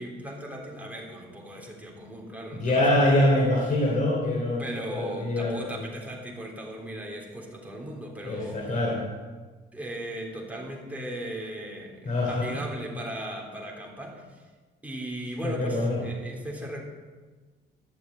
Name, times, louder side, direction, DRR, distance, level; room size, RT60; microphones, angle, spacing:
voice 1, 0.0-3.4 4.6-8.6 9.7-14.4 14.8-16.8, right 1 dB, 5° right, -1 dB, 3.5 m, -38 dB
voice 2, 2.6-4.6 4.9-5.7 8.2-9.0 12.0-12.6 15.4-16.0, left 1 dB, 40° left, -2 dB, 3.1 m, -24 dB
12.5 x 7.0 x 9.1 m, 1.3 s
cardioid pair, 90°, 20 cm